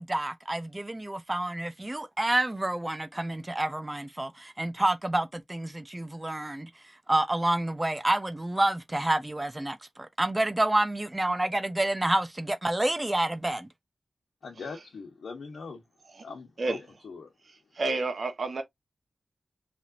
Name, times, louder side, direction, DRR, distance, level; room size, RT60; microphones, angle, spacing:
voice 1, 0.0-6.7 7.1-13.7, right 1 dB, 15° right, 0.6 m, -28 dB
voice 2, 14.4-15.8 16.2-16.8 17.0-17.3, left 4 dB, 85° left, 1.1 m, -41 dB
voice 3, 17.4-18.6, right 3 dB, 45° right, 1.2 m, -31 dB
5.3 x 3.4 x 2.6 m
wide cardioid pair, 180°, 0 cm